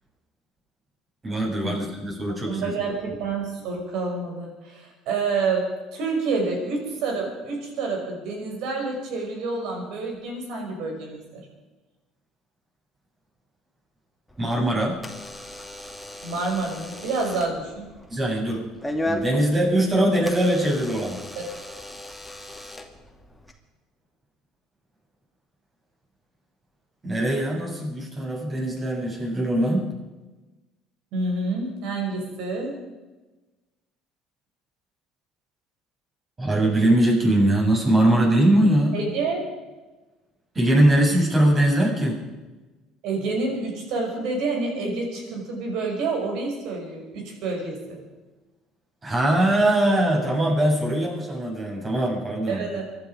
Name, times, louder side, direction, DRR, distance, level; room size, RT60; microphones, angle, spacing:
voice 1, 1.2-2.7 14.4-15.0 18.1-18.6 19.1-21.2 27.0-29.9 36.4-39.0 40.6-42.2 49.0-52.7, right 1 dB, 30° right, -1 dB, 7.3 m, -21 dB
voice 2, 2.5-11.4 16.2-17.9 21.4-21.5 31.1-32.8 38.9-39.4 43.0-48.0 52.5-52.8, right 3 dB, 65° right, 1 dB, 5.9 m, -28 dB
Door / Alarm, 14.3-23.5, left 1 dB, 5° left, 2.5 m, -36 dB
24.5 x 11.5 x 5.1 m, 1.2 s
hypercardioid pair, 65°, 0 cm